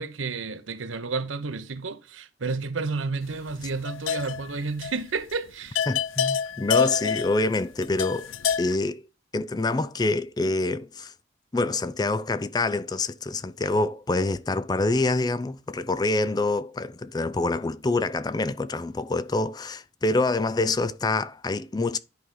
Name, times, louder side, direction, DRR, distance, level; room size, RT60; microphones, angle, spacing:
voice 1, 0.0-5.8, right 4 dB, 90° right, 0.9 m, -31 dB
sound 1, 3.5-4.6 4.8-5.0 5.3-5.4 5.8-8.8, left 7 dB, 85° left, 0.4 m, -27 dB
voice 2, 5.9-8.3 8.6-9.1 9.3-11.1 11.5-22.0, left 2 dB, 20° left, 0.4 m, -26 dB
10.5 x 4.8 x 3.9 m
head